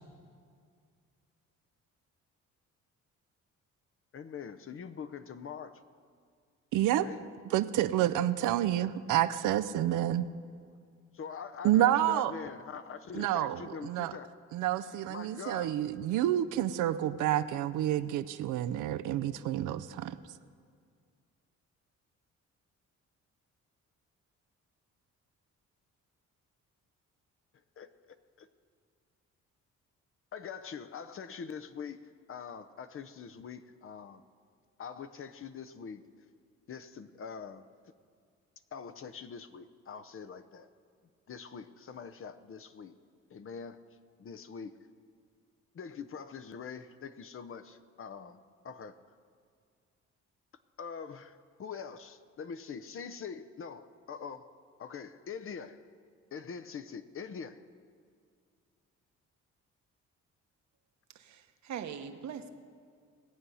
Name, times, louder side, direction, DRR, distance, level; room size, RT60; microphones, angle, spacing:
voice 1, 4.1-5.8 7.0-7.3 11.1-14.3 15.1-15.8 27.8-28.5 30.3-34.2 34.8-36.0 36.7-37.6 38.7-40.7 41.3-43.0 43.3-43.8 44.2-44.8 45.7-49.0 50.8-54.5 54.8-55.8 56.3-57.6, left 6 dB, 45° left, 10 dB, 0.8 m, -44 dB
voice 2, 6.7-7.1 7.5-10.3 11.6-12.3 13.1-14.1 14.5-20.2, right 12 dB, 85° right, 11 dB, 0.6 m, -29 dB
voice 3, 61.1-62.5, right 8 dB, 65° right, 7 dB, 1.0 m, -41 dB
19.5 x 7.7 x 5.6 m, 2.1 s
cardioid pair, 90°, 30 cm